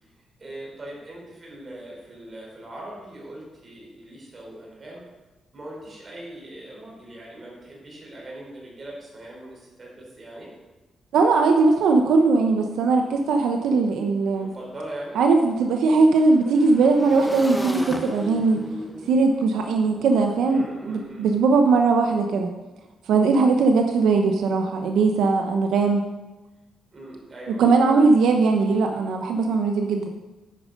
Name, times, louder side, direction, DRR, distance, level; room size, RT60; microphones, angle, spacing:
voice 1, 0.0-5.1 5.5-10.5 13.0-13.2 14.3-15.2 20.5-21.3 26.9-27.7, right 1 dB, 25° right, -3 dB, 4.0 m, -41 dB
voice 2, 11.1-14.5 15.2-18.6 19.1-22.5 23.1-26.0 27.6-30.1, right 4 dB, 80° right, 4 dB, 0.8 m, -19 dB
Motorcycle / Engine, 13.4-13.5 13.8-20.9, equal, ahead, 0.9 m, -38 dB
10.0 x 8.9 x 5.3 m, 1.1 s
cardioid pair, 140°, 0 cm